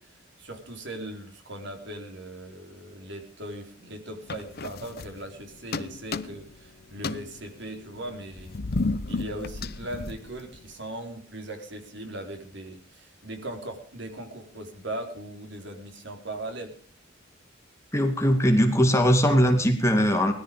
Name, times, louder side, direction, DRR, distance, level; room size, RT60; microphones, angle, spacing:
voice 1, 0.0-8.8 9.1-16.7, right 1 dB, 65° right, 4 dB, 4.0 m, -39 dB
sound 1, 4.3-5.4 5.7-6.6 6.9-10.7, left 3 dB, 55° left, 0.8 m, -33 dB
voice 2, 17.9-20.3, equal, 15° left, 4 dB, 2.4 m, -20 dB
20.0 x 14.0 x 5.2 m, 0.43 s
head